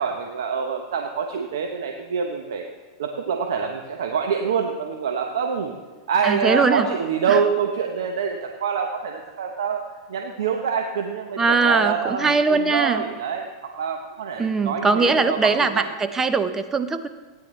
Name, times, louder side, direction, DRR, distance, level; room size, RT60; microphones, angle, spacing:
voice 1, 0.0-2.7 3.0-5.7 6.1-9.8 10.1-15.9, right 6 dB, 80° right, 3 dB, 0.9 m, -26 dB
voice 2, 6.2-6.9 7.3-7.4 11.4-13.0 14.4-17.1, right 4 dB, 15° right, 10 dB, 0.6 m, -21 dB
16.0 x 9.5 x 3.2 m, 1.3 s
hypercardioid pair, 115°, 2 cm